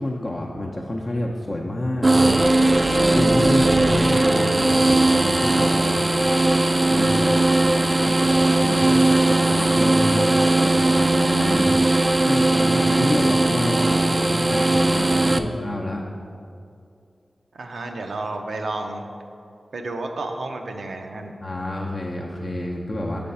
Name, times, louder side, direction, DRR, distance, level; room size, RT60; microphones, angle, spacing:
voice 1, 0.0-2.4 3.1-6.0 6.6-7.5 8.0-11.7 12.3-16.0 21.4-23.3, left 1 dB, 40° left, -2 dB, 0.6 m, -28 dB
sound 1, 2.0-15.4, right 2 dB, 30° right, 0.3 m, -18 dB
voice 2, 17.5-19.1 19.7-21.4, right 2 dB, 90° right, 3 dB, 0.5 m, -31 dB
7.6 x 3.4 x 5.4 m, 2.4 s
wide cardioid pair, 65°, 0 cm